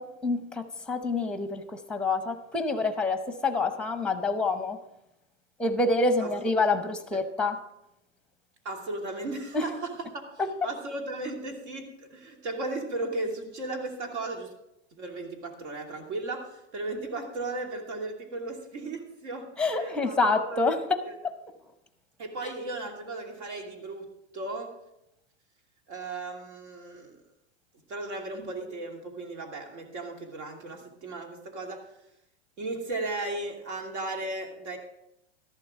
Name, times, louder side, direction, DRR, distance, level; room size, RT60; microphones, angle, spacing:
voice 1, 0.0-4.8 5.6-7.6 9.5-9.6 10.4-10.5 19.6-20.8 21.2-21.3 22.4-22.5, left 3 dB, 5° left, 9 dB, 0.7 m, -27 dB
voice 2, 8.6-14.5 14.9-20.7 21.0-21.1 22.2-24.1 24.3-24.7 25.9-27.2 27.9-31.8 32.6-34.8, right 2 dB, 75° right, 2 dB, 2.8 m, -36 dB
13.5 x 11.5 x 3.7 m, 0.86 s
supercardioid pair, 140°, 34 cm